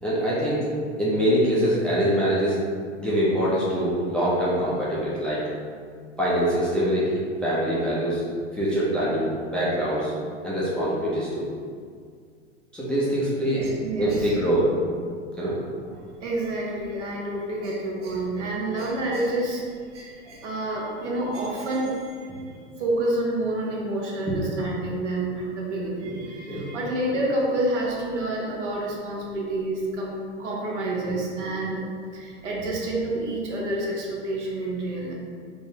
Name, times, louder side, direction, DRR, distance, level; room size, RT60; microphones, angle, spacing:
voice 1, 0.0-0.6 1.0-2.6 3.0-5.4 6.2-8.2 8.5-10.1 10.4-11.4 12.7-13.6 14.0-14.7 15.4-15.6 24.3-24.4 26.1-26.2 26.4-26.8, equal, 5° left, -8 dB, 0.3 m, -24 dB
voice 2, 13.5-14.3 15.9-31.9 32.1-35.1, right 1 dB, 75° right, -3 dB, 0.9 m, -28 dB
3.7 x 2.1 x 2.7 m, 2.1 s
hypercardioid pair, 105°, 36 cm